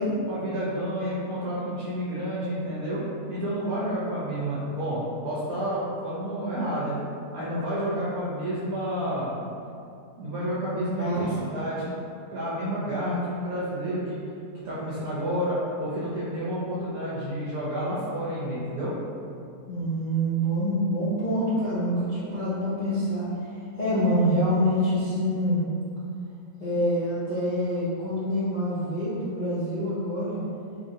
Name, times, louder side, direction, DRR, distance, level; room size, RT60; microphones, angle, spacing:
voice 1, 0.3-3.0 3.3-7.0 7.3-9.3 10.2-12.0 12.3-14.2 14.5-19.0, equal, 70° right, -8 dB, 1.1 m, -30 dB
voice 2, 11.0-11.5 19.7-23.3 23.8-25.6 26.6-30.4, equal, 85° left, -11 dB, 0.4 m, -26 dB
3.1 x 2.7 x 2.6 m, 2.4 s
omnidirectional pair, 1.7 m